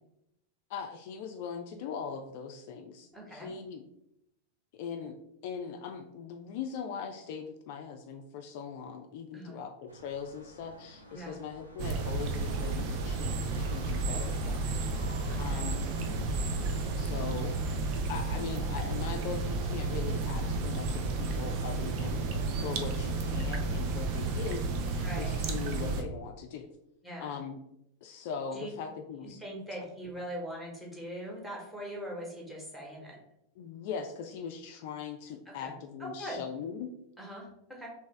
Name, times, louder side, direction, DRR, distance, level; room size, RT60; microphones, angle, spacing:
voice 1, 0.7-3.8 4.7-5.2 5.4-15.1 15.4-15.9 17.0-17.5 18.1-22.3 22.6-26.7 27.2-27.6 28.0-29.4 33.6-36.9, left 6 dB, 50° left, 5 dB, 0.3 m, -40 dB
voice 2, 3.1-3.5 9.3-9.6 11.1-11.4 15.3-15.7 25.0-25.3 27.0-27.4 28.5-28.7 29.4-33.2 35.5-35.7 36.0-36.4 37.2-37.9, equal, 5° right, -2 dB, 1.1 m, -41 dB
sound 1, 9.9-17.4, right 1 dB, 90° right, 0.6 m, -52 dB
sound 2, 11.8-26.0, right 3 dB, 45° right, 0.5 m, -32 dB
3.2 x 2.8 x 3.2 m, 0.81 s
figure-of-eight pair, 90°, 0 cm